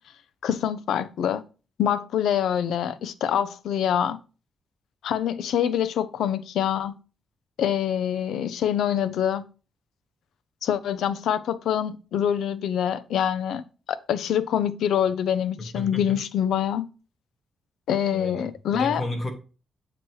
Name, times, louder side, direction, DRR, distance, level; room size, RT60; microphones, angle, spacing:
voice 1, 0.4-1.4 1.8-4.2 5.0-6.9 7.6-9.4 10.6-13.6 14.1-16.9 17.9-19.0, left 9 dB, 90° left, 0.5 m, -25 dB
voice 2, 15.6-16.2 18.1-19.3, left 2 dB, 25° left, 1.4 m, -33 dB
7.6 x 3.0 x 4.6 m
wide cardioid pair, 170°, 0 cm